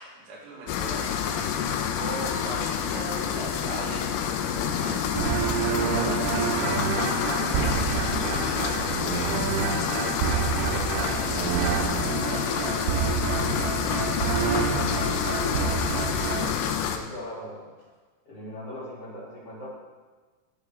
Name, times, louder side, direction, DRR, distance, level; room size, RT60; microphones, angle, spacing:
voice 1, 0.0-4.1 4.6-6.9 7.4-15.0, right 2 dB, 70° right, -5 dB, 4.4 m, -40 dB
sound 1, 0.7-17.0, left 8 dB, 85° left, 3.3 m, -28 dB
sound 2, 5.2-16.5, right 8 dB, 90° right, 3.4 m, -28 dB
voice 2, 13.8-14.1 16.1-16.6 16.8-17.7 18.2-19.7, left 1 dB, 35° left, -8 dB, 3.3 m, -40 dB
13.0 x 6.8 x 3.6 m, 1.4 s
omnidirectional pair, 5.7 m